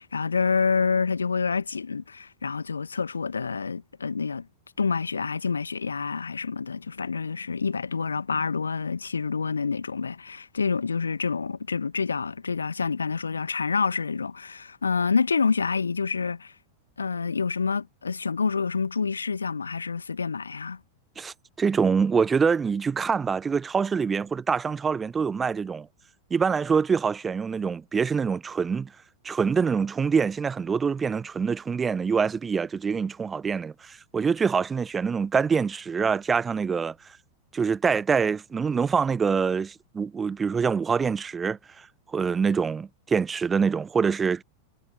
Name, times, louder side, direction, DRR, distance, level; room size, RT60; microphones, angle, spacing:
voice 1, 0.0-4.5 4.8-16.5 17.0-20.8, left 5 dB, 75° left, 1.7 m, -27 dB
voice 2, 21.2-25.9 26.3-28.9 29.2-36.9 37.5-41.9 42.1-44.4, right 6 dB, 15° right, 1.0 m, -25 dB
figure-of-eight pair, 90°, 0 cm